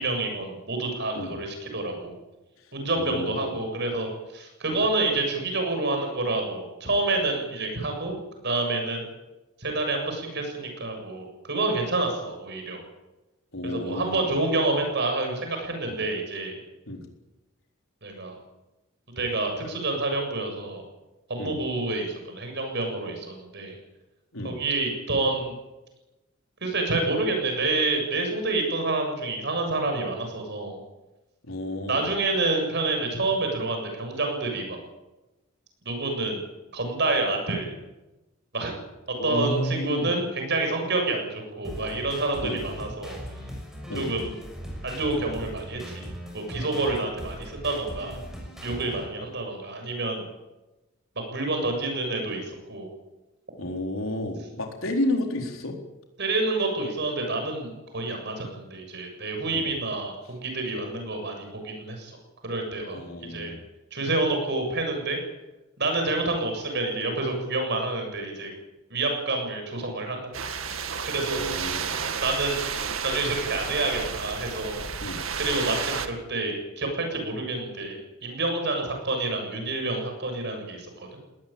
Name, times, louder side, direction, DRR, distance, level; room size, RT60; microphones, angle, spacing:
voice 1, 0.0-2.2 2.7-8.2 8.4-9.0 9.6-12.8 13.7-16.6 18.0-18.3 19.2-20.8 21.3-23.8 24.4-25.5 26.6-30.8 31.9-34.8 35.9-36.4 36.7-37.7 38.5-38.7 39.2-43.2 43.9-44.4 44.8-46.1 46.3-48.2 48.6-50.3 51.3-52.9 56.2-62.1 62.4-63.0 63.3-63.5 63.9-65.2 65.8-68.5 68.9-70.5 71.0-71.7 72.2-72.6 73.0-74.8 75.4-81.1, right 2 dB, 55° right, 4 dB, 7.3 m, -28 dB
voice 2, 3.0-3.6 4.7-4.8 13.5-14.3 15.9-16.0 16.9-17.0 21.4-21.6 24.3-24.6 31.4-32.1 39.2-40.1 42.4-42.6 43.9-44.1 53.6-55.8 59.5-59.7 62.9-63.6 71.3-72.0 75.0-75.2, left 1 dB, 75° left, 2 dB, 4.2 m, -31 dB
sound 1, 41.6-49.0, equal, ahead, 6.7 m, -39 dB
sound 2, 70.3-76.1, right 6 dB, 75° right, 1.9 m, -31 dB
20.5 x 18.5 x 9.0 m, 1.1 s
head